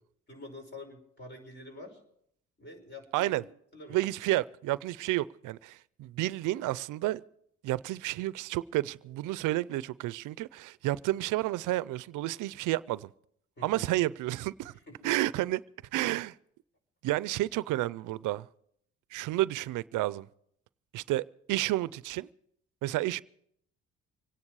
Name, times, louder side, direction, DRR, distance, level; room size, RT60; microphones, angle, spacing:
voice 1, 0.3-2.0 2.6-3.4 3.7-4.0 13.6-13.9 14.9-15.1, left 2 dB, 35° left, 5.2 m, -47 dB
voice 2, 3.1-3.4 3.9-7.2 7.6-13.1 13.6-14.7 15.0-15.6 15.9-16.3 17.0-18.5 19.1-20.3 20.9-22.3 22.8-23.2, right 16 dB, 85° right, 0.5 m, -31 dB
25.0 x 9.9 x 4.7 m
cardioid pair, 90°, 30 cm